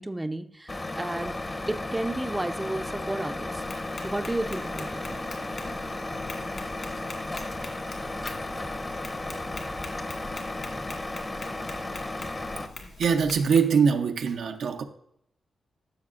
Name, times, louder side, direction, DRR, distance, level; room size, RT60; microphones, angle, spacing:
voice 1, 0.0-3.6 4.0-5.2, right 1 dB, 15° right, 9 dB, 0.5 m, -32 dB
Truck, 0.7-12.7, left 2 dB, 30° left, 0.8 m, -34 dB
Tap, 3.6-13.6, left 3 dB, 60° left, 2.0 m, -44 dB
voice 2, 13.0-14.8, right 6 dB, 80° right, 5 dB, 0.7 m, -23 dB
14.0 x 6.2 x 2.5 m, 0.74 s
cardioid pair, 70°, 0 cm